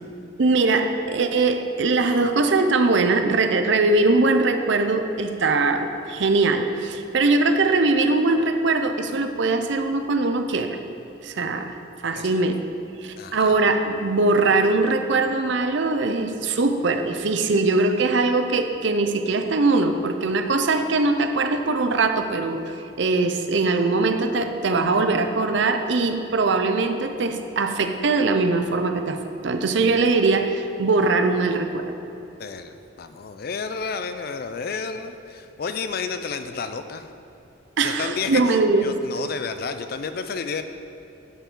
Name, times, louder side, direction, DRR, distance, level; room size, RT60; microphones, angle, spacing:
voice 1, 0.4-10.8 11.2-11.8 12.0-12.6 13.0-31.9 37.8-38.9, right 3 dB, 60° right, 7 dB, 0.5 m, -21 dB
voice 2, 13.2-13.6 32.4-37.1 37.8-40.6, left 5 dB, 45° left, 9 dB, 0.4 m, -31 dB
11.0 x 5.8 x 3.8 m, 2.8 s
head